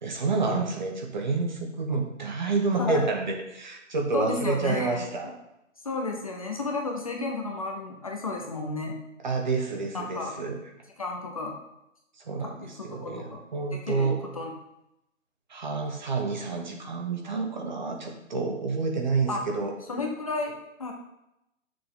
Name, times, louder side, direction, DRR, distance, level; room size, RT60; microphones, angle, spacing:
voice 1, 0.0-5.3 9.2-10.6 12.2-14.2 15.5-19.7, right 4 dB, 35° right, 3 dB, 1.2 m, -29 dB
voice 2, 4.1-5.1 5.8-8.9 9.9-10.3 11.0-11.6 12.4-13.4 13.7-14.5 19.3-19.4 19.9-20.9, left 3 dB, 30° left, 1 dB, 0.8 m, -32 dB
10.5 x 6.7 x 3.7 m, 0.87 s
hypercardioid pair, 170°, 38 cm